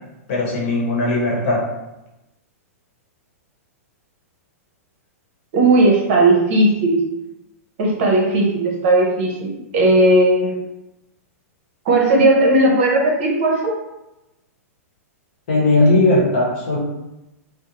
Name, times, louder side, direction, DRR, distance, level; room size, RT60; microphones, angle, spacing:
voice 1, 0.3-1.7 15.5-16.8, left 2 dB, 55° left, -4 dB, 1.0 m, -17 dB
voice 2, 5.5-7.0 7.8-10.6 11.8-13.7, right 2 dB, 50° right, -1 dB, 0.7 m, -16 dB
2.5 x 2.0 x 2.9 m, 0.95 s
hypercardioid pair, 150°, 8 cm